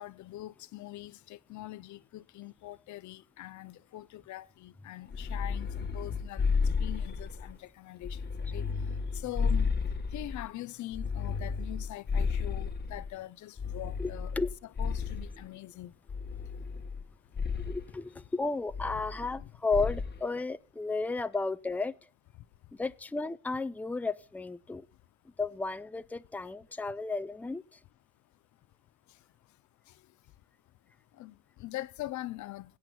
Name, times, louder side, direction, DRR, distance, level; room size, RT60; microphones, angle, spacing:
voice 1, 0.0-14.4 14.8-16.0 19.3-19.5 22.4-22.5 29.1-29.6 29.8-30.2 31.1-32.8, left 16 dB, 75° left, 0.5 m, -43 dB
sound 1, 5.1-7.5 8.0-10.5 10.9-13.1 13.6-15.4 16.1-17.0 17.3-17.8 18.7-19.4 19.7-20.2, left 5 dB, 35° left, 1.2 m, -32 dB
voice 2, 17.7-21.9 22.8-24.8 25.4-27.6, left 3 dB, 5° left, 0.5 m, -33 dB
20.0 x 8.6 x 2.3 m
cardioid pair, 90°, 30 cm